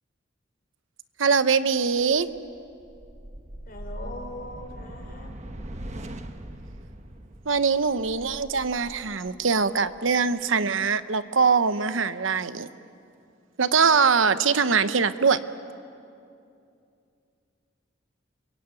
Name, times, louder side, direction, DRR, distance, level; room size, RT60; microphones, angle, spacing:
voice 1, 1.2-2.3 7.5-12.7 13.6-15.4, right 5 dB, 85° right, 13 dB, 0.9 m, -22 dB
sound 1, 2.0-10.4, right 1 dB, 35° right, 1.2 m, -41 dB
voice 2, 3.7-5.3, left 1 dB, 50° left, 1 dB, 5.2 m, -40 dB
29.5 x 22.0 x 9.1 m, 2.6 s
head